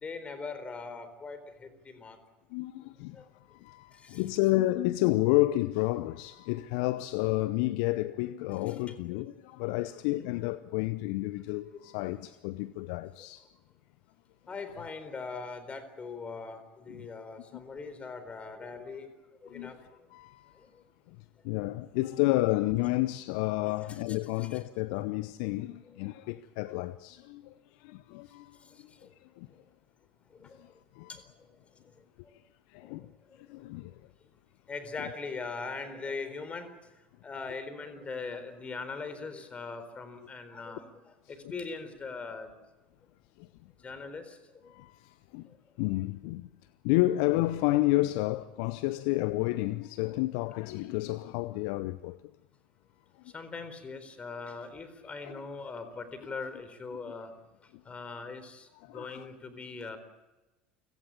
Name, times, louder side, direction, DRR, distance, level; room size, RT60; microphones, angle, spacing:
voice 1, 0.0-2.2 3.1-3.3 4.0-4.2 8.7-8.9 10.1-10.3 11.6-11.8 13.2-13.3 14.5-19.1 19.4-19.8 21.5-21.7 24.1-24.6 30.4-30.6 31.1-31.2 32.8-32.9 34.7-36.7 37.2-40.9 41.3-42.5 43.8-44.4 53.3-57.3 57.9-60.0, left 4 dB, 25° left, 4.1 m, -41 dB
voice 2, 2.5-13.5 16.9-17.1 17.5-17.6 19.5-19.7 20.1-20.6 21.4-27.5 27.8-28.7 29.4-29.5 30.6-30.7 30.9-31.1 32.7-33.1 33.5-33.9 41.3-41.4 43.4-43.5 44.7-45.5 45.8-46.5 46.8-52.2 55.2-55.4 57.1-57.2 58.8-59.3, left 18 dB, 60° left, 0.7 m, -30 dB
29.5 x 17.5 x 8.6 m
figure-of-eight pair, 70°, 5 cm